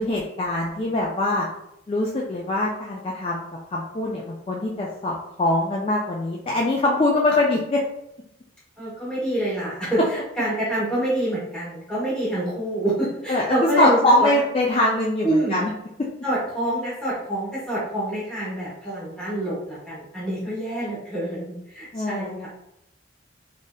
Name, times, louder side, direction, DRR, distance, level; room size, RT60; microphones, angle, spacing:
voice 1, 0.0-1.5 1.9-3.5 3.7-7.8 13.3-15.7 21.9-22.5, left 1 dB, 30° left, -3 dB, 0.3 m, -23 dB
voice 2, 8.8-14.4 15.2-15.6 16.2-22.5, right 1 dB, 5° left, -8 dB, 1.2 m, -26 dB
3.3 x 2.7 x 2.2 m, 0.80 s
head